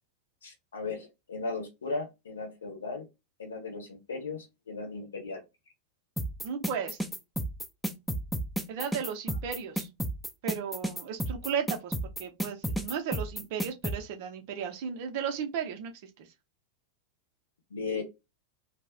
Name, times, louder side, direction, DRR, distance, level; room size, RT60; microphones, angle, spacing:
voice 1, 0.4-3.0 3.4-5.4 17.7-18.0, left 4 dB, 70° left, 0.8 m, -36 dB
sound 1, 6.2-14.0, right 1 dB, ahead, 0.4 m, -32 dB
voice 2, 6.4-7.0 8.7-9.9 10.4-11.9 12.2-16.3, right 7 dB, 50° right, 0.6 m, -35 dB
2.4 x 2.0 x 3.5 m
figure-of-eight pair, 90°, 0 cm